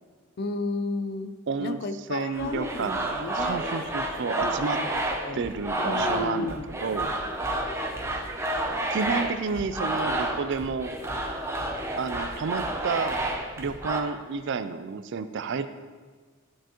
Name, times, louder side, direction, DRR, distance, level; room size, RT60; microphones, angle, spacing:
voice 1, 0.4-1.3 1.6-3.6 4.4-4.9 5.2-5.4 5.8-6.7, left 3 dB, 50° left, 9 dB, 0.5 m, -33 dB
voice 2, 1.5-1.8 2.1-4.8 5.3-7.1 8.9-10.9 12.0-13.2 13.6-15.7, right 5 dB, 60° right, 11 dB, 0.4 m, -30 dB
sound 1, 2.3-14.0, right 1 dB, 15° right, 0.6 m, -30 dB
13.0 x 4.5 x 3.0 m, 1.5 s
head